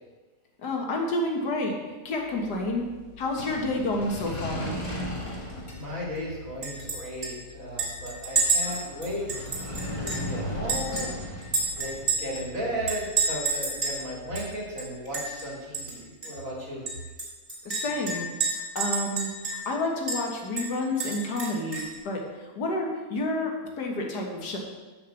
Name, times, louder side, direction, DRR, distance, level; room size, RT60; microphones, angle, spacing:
voice 1, 0.6-1.8 2.1-2.9 3.2-4.7 17.7-18.3 18.5-19.3 19.7-24.6, left 2 dB, 70° left, 1 dB, 2.0 m, -29 dB
sound 1, 2.2-15.3, left 1 dB, 20° left, 1.2 m, -38 dB
voice 2, 5.8-11.1 11.8-16.8, equal, 50° right, -3 dB, 2.6 m, -35 dB
Chink clink, 6.6-7.0 7.2-7.3 7.8-10.3 10.7-12.4 12.9-14.0 14.3-14.4 14.8-15.4 15.7-15.9 16.2-16.3 16.9-19.7 20.1-20.2 20.6-21.9, right 4 dB, 25° right, 3.0 m, -29 dB
6.6 x 6.1 x 7.0 m, 1.3 s
omnidirectional pair, 1.9 m